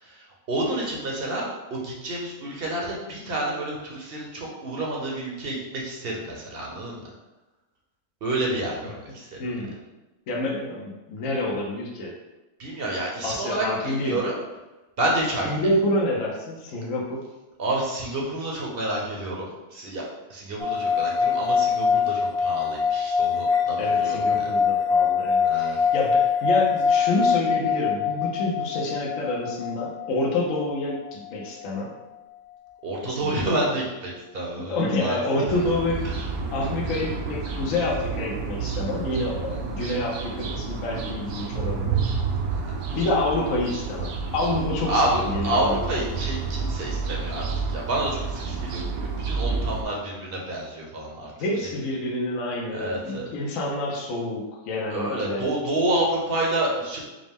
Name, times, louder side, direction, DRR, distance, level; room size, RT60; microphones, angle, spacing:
voice 1, 0.0-7.0 8.2-9.4 12.6-14.4 15.0-15.6 17.6-20.0 20.3-24.5 25.4-25.8 32.8-35.4 42.5-42.7 44.9-45.1 45.4-47.4 47.7-51.3 52.7-53.3 54.9-57.0, right 1 dB, 50° right, -2 dB, 0.8 m, -29 dB
voice 2, 9.4-9.7 10.3-12.1 13.2-14.2 15.4-17.2 23.8-31.9 33.0-33.4 34.6-36.0 36.5-42.0 42.9-45.8 51.4-55.5, left 2 dB, 65° left, -2 dB, 1.0 m, -28 dB
sound 1, 20.6-31.9, left 6 dB, 85° left, 1.7 m, -24 dB
sound 2, 35.5-49.8, right 4 dB, 75° right, 1.0 m, -30 dB
5.1 x 2.0 x 3.4 m, 1.1 s
omnidirectional pair, 1.6 m